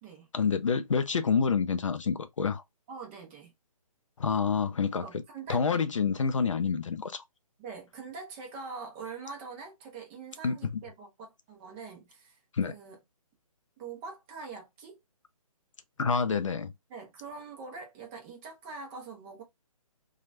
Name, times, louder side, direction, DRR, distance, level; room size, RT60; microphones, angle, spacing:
voice 1, 0.3-2.6 4.2-5.0 5.5-7.2 10.4-10.7 12.5-12.7 16.0-16.7, left 5 dB, 55° left, 0.4 m, -27 dB
voice 2, 2.9-3.5 5.0-5.6 7.6-13.0 13.8-15.0 16.9-19.4, right 4 dB, 20° right, 0.8 m, -44 dB
2.9 x 2.3 x 2.5 m
figure-of-eight pair, 140°, 19 cm